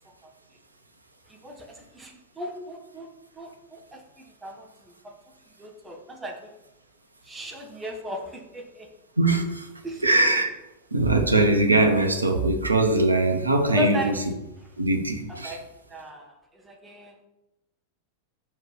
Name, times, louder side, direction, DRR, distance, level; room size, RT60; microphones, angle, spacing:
voice 1, 1.3-3.1 3.4-5.1 5.6-6.4 7.2-8.9 9.8-10.1 13.7-14.2 15.4-15.6 15.9-17.1, equal, 10° right, 2 dB, 1.3 m, -36 dB
voice 2, 9.2-9.7 10.0-10.5 10.9-14.1 14.8-15.6, right 2 dB, 80° right, 5 dB, 0.8 m, -21 dB
4.7 x 4.7 x 6.0 m, 0.93 s
figure-of-eight pair, 90°, 0 cm